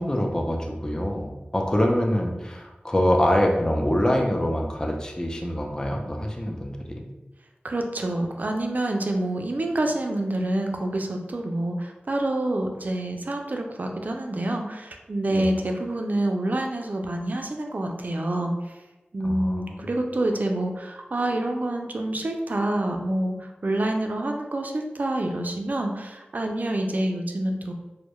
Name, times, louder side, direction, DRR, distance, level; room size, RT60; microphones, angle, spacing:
voice 1, 0.0-7.1 15.3-15.5 19.2-19.9, left 1 dB, 20° left, 1 dB, 0.4 m, -25 dB
voice 2, 7.6-18.8 19.1-27.7, right 1 dB, 55° right, 3 dB, 0.3 m, -27 dB
2.2 x 2.0 x 2.9 m, 1.1 s
wide cardioid pair, 60°, 3 cm